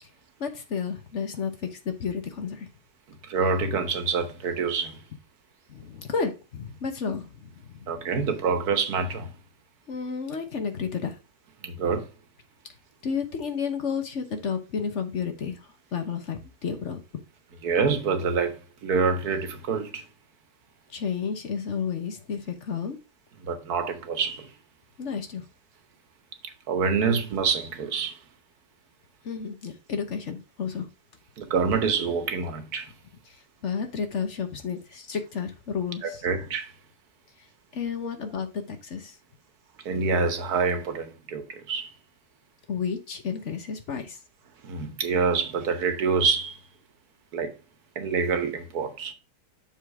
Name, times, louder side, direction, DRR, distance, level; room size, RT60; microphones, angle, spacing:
voice 1, 0.4-1.7 2.0-2.6 5.7-7.3 9.9-11.1 13.0-15.6 15.9-17.0 20.9-23.0 25.0-25.4 29.2-30.9 33.6-36.0 37.7-39.1 42.7-44.2, left 6 dB, 50° left, 1.2 m, -31 dB
voice 2, 3.2-5.0 7.9-9.3 11.6-12.1 17.6-20.0 23.4-24.5 26.7-28.2 31.4-32.9 36.0-36.7 39.8-41.9 44.6-46.6 47.3-47.5 47.9-49.1, right 5 dB, 75° right, 1.6 m, -26 dB
7.2 x 3.8 x 4.8 m
omnidirectional pair, 1.7 m